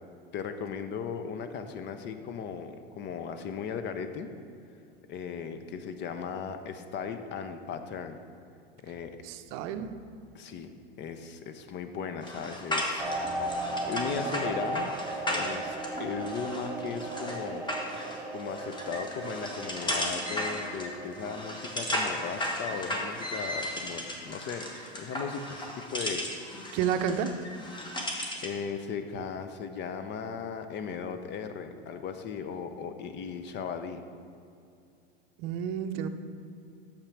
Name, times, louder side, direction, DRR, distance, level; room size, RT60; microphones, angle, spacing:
voice 1, 0.3-4.3 5.1-8.2 8.8-9.2 10.3-10.7 11.0-13.5 13.9-15.0 15.3-17.7 18.3-26.3 27.7-34.0, left 6 dB, 35° left, 8 dB, 0.6 m, -37 dB
voice 2, 9.2-9.9 26.7-27.3 35.4-36.1, right 8 dB, 55° right, 9 dB, 0.6 m, -30 dB
sound 1, 12.2-28.6, left 1 dB, 15° left, 1.3 m, -35 dB
sound 2, 13.0-24.3 24.7-25.0, right 2 dB, 5° right, 0.9 m, -37 dB
6.7 x 5.7 x 5.9 m, 2.6 s
hypercardioid pair, 100°, 30 cm